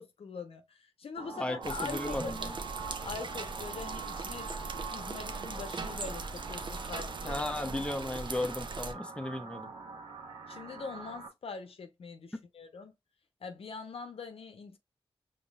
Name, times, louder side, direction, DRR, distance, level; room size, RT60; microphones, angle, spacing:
voice 1, 0.0-2.5 3.0-7.4 10.5-12.9 13.4-14.8, left 5 dB, 70° left, 0.8 m, -43 dB
sound 1, 1.2-11.3, right 4 dB, 70° right, 1.4 m, -44 dB
voice 2, 1.4-2.5 7.2-9.7, left 1 dB, 10° left, 0.7 m, -35 dB
sound 2, 1.6-8.9, right 4 dB, 50° right, 0.6 m, -40 dB
5.2 x 3.0 x 2.3 m
cardioid pair, 50°, 10 cm